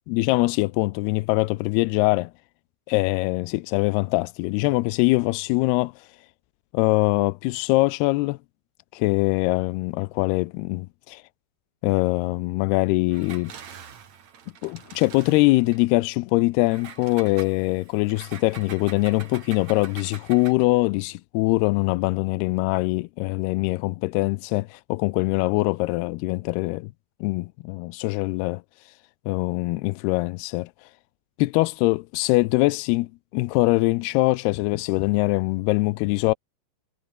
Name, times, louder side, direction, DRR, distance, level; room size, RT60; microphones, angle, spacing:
voice 1, 0.1-2.3 2.9-5.9 6.7-8.4 8.9-11.2 11.8-13.5 14.6-26.9 27.2-28.6 29.3-30.7 31.4-36.3, left 22 dB, 85° left, 2.4 m, -23 dB
Engine, 13.1-15.9 16.7-20.7, right 8 dB, 45° right, 3.0 m, -44 dB
omnidirectional pair, 5.1 m